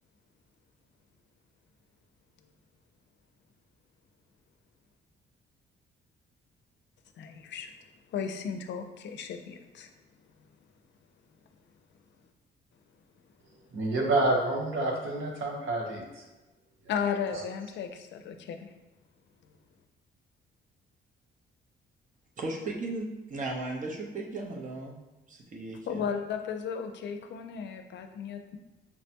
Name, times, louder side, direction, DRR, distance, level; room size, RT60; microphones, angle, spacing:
voice 1, 7.2-7.7 8.1-9.9 16.9-18.7 25.9-28.6, left 7 dB, 65° left, 6 dB, 0.4 m, -35 dB
voice 2, 13.7-16.2 17.3-17.4, right 2 dB, 75° right, -1 dB, 1.0 m, -28 dB
voice 3, 22.4-24.9 25.3-26.0, right 2 dB, 40° right, -1 dB, 0.8 m, -36 dB
5.6 x 2.1 x 2.8 m, 1.1 s
cardioid pair, 90°, 20 cm